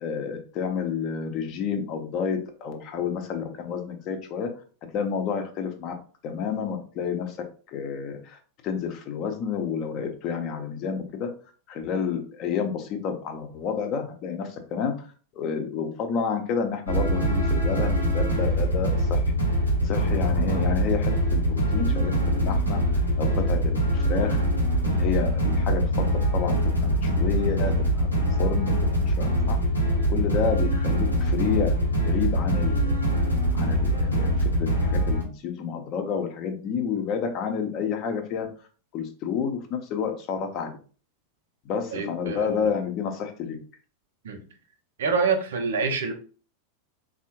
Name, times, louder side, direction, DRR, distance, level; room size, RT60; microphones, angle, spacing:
voice 1, 0.0-4.5 4.9-5.9 6.2-7.4 7.7-8.4 8.6-11.3 11.7-15.1 15.4-19.2 19.8-22.8 23.2-24.4 24.8-29.6 30.1-31.8 32.0-33.0 33.5-38.5 38.9-40.8 41.6-43.6, left 6 dB, 40° left, 4 dB, 0.6 m, -30 dB
sound 1, 16.9-35.2, equal, 90° left, 0.8 m, -23 dB
voice 2, 41.9-42.7 44.2-44.4 45.0-46.1, right 5 dB, 60° right, 6 dB, 0.5 m, -26 dB
3.4 x 2.0 x 2.8 m, 0.40 s
figure-of-eight pair, 85°, 0 cm